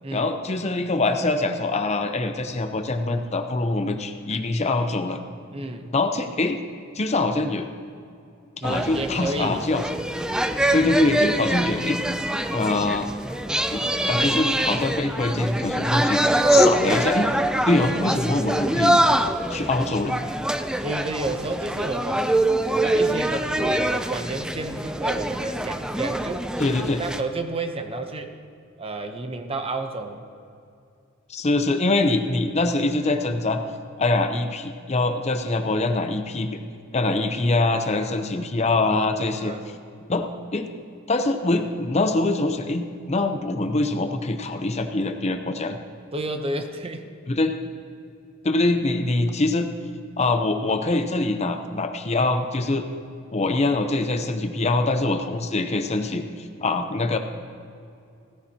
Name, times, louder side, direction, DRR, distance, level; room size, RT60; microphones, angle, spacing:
voice 1, 0.1-5.2 5.9-6.6 6.9-7.7 8.6-9.8 10.7-12.0 12.5-13.1 13.7-16.2 16.5-17.3 17.7-19.0 19.5-20.1 26.6-27.0 31.3-33.6 34.0-36.5 36.9-39.6 40.1-40.7 41.1-45.8 47.3-47.5 48.4-49.7 50.2-52.8 53.3-57.2, left 2 dB, 35° left, 7 dB, 0.7 m, -24 dB
voice 2, 5.5-5.9 8.6-9.6 20.8-22.3 22.8-26.5 27.0-28.3 28.8-30.3 38.0-38.2 39.4-39.6 46.1-47.1, right 2 dB, 30° right, 6 dB, 0.8 m, -31 dB
sound 1, 8.6-27.2, right 1 dB, 5° right, 0.4 m, -24 dB
16.5 x 14.5 x 2.9 m, 2.5 s
head